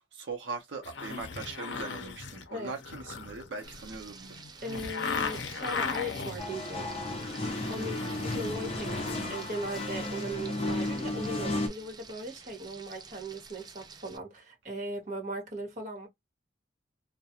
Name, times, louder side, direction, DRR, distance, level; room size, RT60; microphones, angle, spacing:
voice 1, 0.1-4.4, right 3 dB, 75° right, 0.6 m, -40 dB
sound 1, 0.8-6.4 7.0-9.9 10.2-10.3, left 5 dB, 75° left, 0.6 m, -38 dB
Frying (food), 3.6-14.2, right 5 dB, 20° right, 0.4 m, -50 dB
voice 2, 4.6-6.9 7.4-16.1, right 1 dB, 45° right, 1.1 m, -38 dB
sound 2, 6.4-11.7, left 2 dB, 35° left, 0.6 m, -33 dB
2.3 x 2.1 x 2.8 m
head